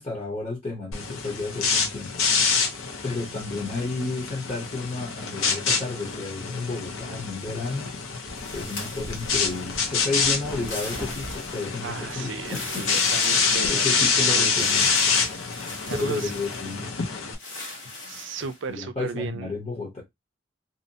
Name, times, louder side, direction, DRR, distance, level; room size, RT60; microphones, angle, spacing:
voice 1, 0.0-2.3 3.0-7.9 8.5-12.9 13.2-13.4 13.6-15.1 15.9-16.9 18.7-20.0, left 3 dB, 30° left, 0.9 m, -32 dB
sound 1, 0.9-17.3, left 5 dB, 85° left, 0.7 m, -26 dB
sound 2, 7.3-13.6, equal, 5° right, 0.7 m, -43 dB
sound 3, 8.4-9.9 10.5-11.9 12.4-14.1 14.5-16.9 17.4-18.6, left 2 dB, 70° left, 1.3 m, -40 dB
voice 2, 11.8-13.9 14.2-14.9 15.2-16.3 18.1-19.5, right 5 dB, 65° right, 0.4 m, -35 dB
2.7 x 2.1 x 2.6 m
head